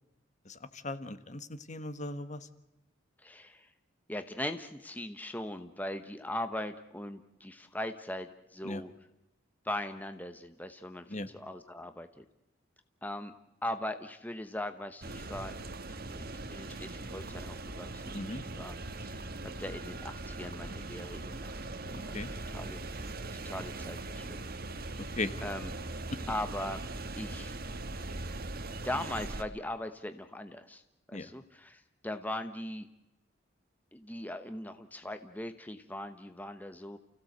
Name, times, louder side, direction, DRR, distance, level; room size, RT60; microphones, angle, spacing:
voice 1, 0.4-2.5 8.6-8.8 11.1-11.3 18.1-18.4 21.9-22.3 25.0-25.3 26.1-26.2 31.1-31.3, left 2 dB, 40° left, 11 dB, 1.3 m, -38 dB
voice 2, 3.2-3.7 4.1-8.9 9.6-11.0 11.3-12.2 13.0-13.3 13.6-15.6 16.1-19.3 19.6-22.2 22.5-22.8 23.3-25.1 25.4-25.7 26.3-26.8 27.2-27.5 28.8-30.8 31.1-32.9 33.9-37.0, left 1 dB, 10° left, 8 dB, 1.0 m, -40 dB
sound 1, 15.0-29.4, right 2 dB, 50° right, 1.5 m, -40 dB
30.0 x 16.0 x 7.9 m, 0.96 s
head